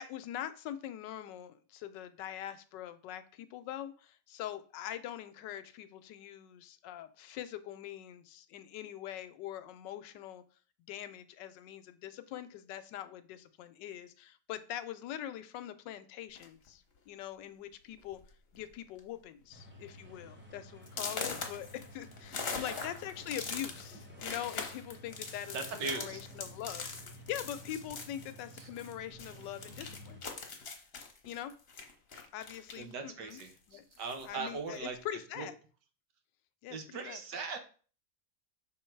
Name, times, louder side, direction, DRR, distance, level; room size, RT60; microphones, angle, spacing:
voice 1, 0.0-10.4 10.9-18.2 18.5-26.9 27.3-30.2 31.2-31.5 32.3-33.4 33.7-33.8 34.2-35.5 36.6-37.2, left 11 dB, 80° left, 11 dB, 1.2 m, -43 dB
sound 1, 16.3-16.7 17.5-17.6 18.0-18.2 18.5-19.0 19.4-19.5 20.0-20.1 20.9-28.9 29.2-32.9 33.3-34.3, left 5 dB, 40° left, 1.0 m, -42 dB
sound 2, 19.5-30.2, equal, 10° right, 1.0 m, -52 dB
voice 2, 22.5-22.8 25.5-26.2 28.6-28.7 32.8-35.0 35.4-35.5 36.7-37.6, right 4 dB, 75° right, 6 dB, 1.6 m, -39 dB
5.9 x 3.8 x 4.4 m, 0.39 s
omnidirectional pair, 1.9 m